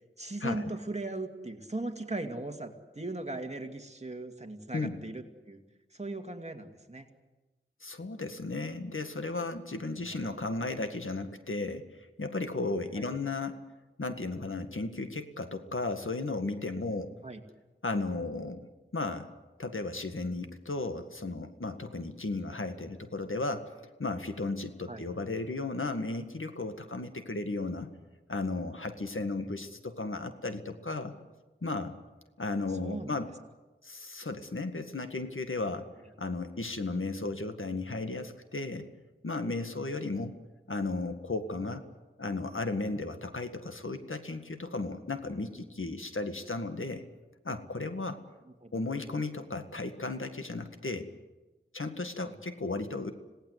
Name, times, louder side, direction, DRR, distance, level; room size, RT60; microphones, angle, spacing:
voice 1, 0.2-5.6 5.9-7.1 10.0-10.2 12.9-13.1 17.2-17.4 24.9-25.0 29.4-29.5 32.8-33.2 48.4-48.8 52.2-52.3, right 2 dB, 30° right, 4 dB, 2.5 m, -38 dB
voice 2, 7.8-11.9 12.2-13.6 14.0-17.1 17.8-18.7 18.9-19.3 19.6-23.7 24.0-27.9 28.3-31.1 31.6-32.0 32.4-33.3 33.8-35.9 36.2-38.9 39.2-40.4 40.7-41.8 42.2-47.0 47.4-48.2 48.7-51.1 51.7-53.1, left 3 dB, 75° left, 7 dB, 1.9 m, -35 dB
26.5 x 18.5 x 8.2 m, 1.1 s
wide cardioid pair, 50°, 21 cm